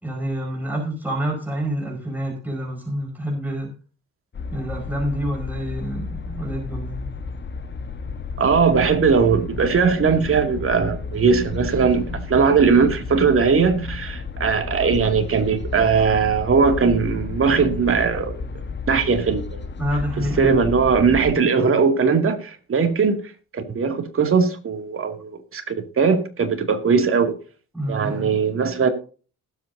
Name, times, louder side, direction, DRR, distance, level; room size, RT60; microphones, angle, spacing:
voice 1, 0.0-3.7 4.5-7.1 19.8-20.5 27.7-28.3, equal, 5° right, 5.0 m, -27 dB
sound 1, 4.3-21.4, left 4 dB, 35° left, 1.4 m, -32 dB
voice 2, 8.4-18.4 18.9-19.6 20.2-23.2 23.5-27.4 27.9-28.9, right 5 dB, 45° right, 2.4 m, -19 dB
19.5 x 8.1 x 2.7 m
cardioid pair, 90°, 30 cm